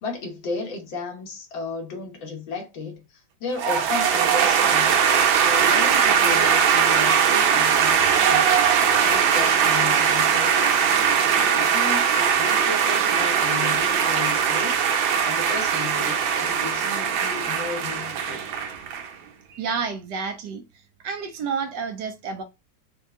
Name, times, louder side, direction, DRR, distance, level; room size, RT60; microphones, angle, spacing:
voice 1, 0.0-5.0 5.3-8.5 9.0-10.9 11.2-18.4, left 4 dB, 85° left, 1.9 m, -34 dB
sound 1, 3.6-19.1, right 7 dB, 85° right, 1.5 m, -20 dB
voice 2, 19.5-20.6 21.0-22.4, right 5 dB, 70° right, 1.1 m, -29 dB
4.4 x 2.3 x 3.5 m
omnidirectional pair, 2.1 m